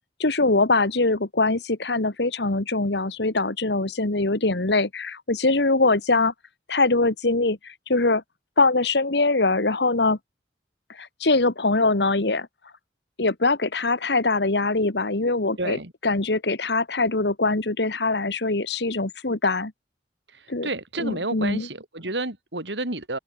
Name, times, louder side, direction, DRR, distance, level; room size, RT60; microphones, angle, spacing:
voice 1, 0.2-6.3 6.7-8.2 8.6-10.2 10.9-12.5 13.2-19.7 20.5-20.7 21.0-21.7, left 3 dB, 70° left, 1.7 m, -23 dB
voice 2, 15.6-15.9 20.3-23.2, right 2 dB, 80° right, 4.7 m, -30 dB
head